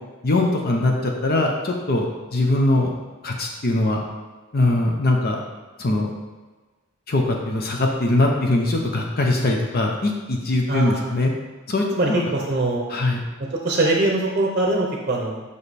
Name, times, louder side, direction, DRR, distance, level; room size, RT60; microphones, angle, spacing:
voice 1, 0.2-2.1 2.3-2.9 3.2-4.0 4.5-5.4 5.8-6.1 7.1-11.3 11.7-12.2 12.9-13.2, left 2 dB, 45° left, 1 dB, 0.7 m, -21 dB
voice 2, 10.7-11.1 12.0-12.8 13.6-15.4, right 2 dB, 35° right, -1 dB, 0.7 m, -22 dB
5.4 x 5.0 x 4.1 m, 1.3 s
head